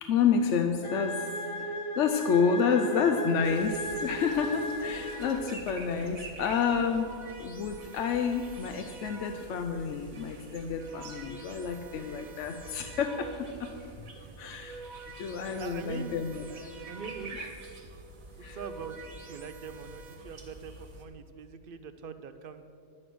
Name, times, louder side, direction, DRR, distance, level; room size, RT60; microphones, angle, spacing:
voice 1, 0.0-13.7 14.4-14.8 15.2-16.8 17.4-17.5 18.4-18.6, left 6 dB, 65° left, 6 dB, 0.9 m, -29 dB
sound 1, 0.8-5.7, equal, 30° left, 0.7 m, -36 dB
sound 2, 3.4-21.0, right 2 dB, 90° right, 1.8 m, -48 dB
sound 3, 4.9-5.9 6.6-9.8 10.5-13.7 14.4-17.6 18.3-20.2, right 4 dB, 35° right, 1.4 m, -48 dB
voice 2, 14.2-14.9 15.6-16.6 16.9-17.3 17.6-18.0 18.3-22.6, right 6 dB, 55° right, 10 dB, 0.6 m, -43 dB
10.5 x 9.0 x 6.0 m, 2.4 s
omnidirectional pair, 1.4 m